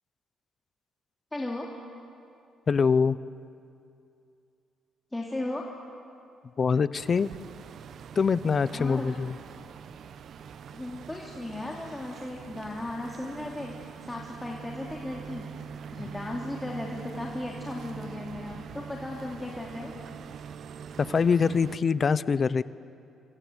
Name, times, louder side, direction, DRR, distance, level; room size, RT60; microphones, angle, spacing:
voice 1, 1.3-1.7 5.1-5.7 8.7-9.1 10.7-15.5 15.9-19.9, left 1 dB, 10° left, -2 dB, 2.8 m, -36 dB
voice 2, 2.7-3.2 6.6-7.3 8.2-9.3 21.1-22.6, left 5 dB, 40° left, 17 dB, 0.7 m, -24 dB
sound 1, 6.9-21.8, right 7 dB, 65° right, 0.9 m, -43 dB
26.0 x 24.5 x 8.1 m, 2.5 s
cardioid pair, 90°, 0 cm